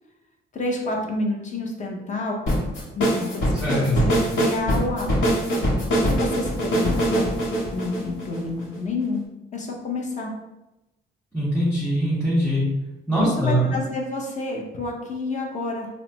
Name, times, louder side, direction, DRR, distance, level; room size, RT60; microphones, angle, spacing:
voice 1, 0.5-2.4 2.9-4.0 4.4-5.1 6.0-7.3 7.7-9.3 9.5-10.3 13.2-15.9, left 2 dB, 35° left, 0 dB, 0.7 m, -29 dB
sound 1, 2.5-8.8, equal, 70° left, 1.0 m, -22 dB
voice 2, 3.6-4.0 11.3-12.6 13.1-13.7, equal, 5° left, -9 dB, 1.1 m, -22 dB
3.1 x 2.0 x 2.9 m, 0.96 s
cardioid pair, 90°, 20 cm